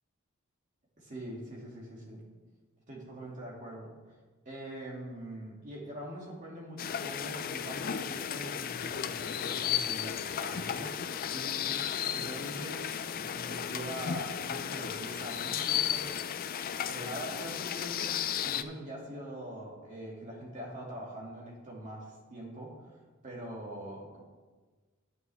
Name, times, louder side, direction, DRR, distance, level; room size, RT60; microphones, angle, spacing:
voice 1, 1.0-2.2 2.9-3.9 4.4-11.0 11.3-11.8 12.1-12.8 13.1-16.0 16.9-18.1 18.4-24.2, right 1 dB, 35° right, -4 dB, 2.5 m, -43 dB
sound 1, 6.8-18.6, left 9 dB, 40° left, 0.4 m, -34 dB
10.5 x 9.2 x 3.5 m, 1.3 s
head